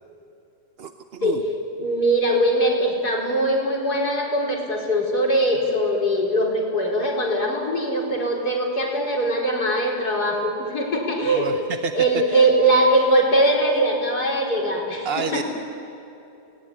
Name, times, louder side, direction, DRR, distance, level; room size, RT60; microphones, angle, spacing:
voice 1, 0.8-1.4 11.3-11.9 12.3-12.5 15.0-15.4, right 6 dB, 45° right, 7 dB, 0.9 m, -29 dB
voice 2, 1.8-11.6 11.9-15.4, right 1 dB, 65° left, -2 dB, 5.0 m, -21 dB
29.0 x 19.0 x 9.9 m, 2.8 s
omnidirectional pair, 1.8 m